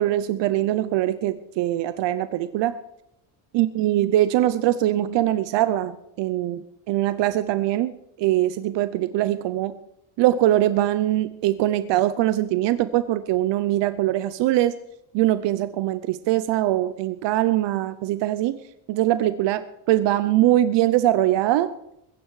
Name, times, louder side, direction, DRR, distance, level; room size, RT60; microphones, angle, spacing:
voice 1, 0.0-2.8 3.5-7.9 8.2-9.7 10.2-14.7 15.1-18.5 18.9-19.6 19.9-21.7, right 14 dB, 65° right, 13 dB, 0.8 m, -22 dB
21.5 x 9.9 x 4.8 m, 0.81 s
cardioid pair, 170°, 47 cm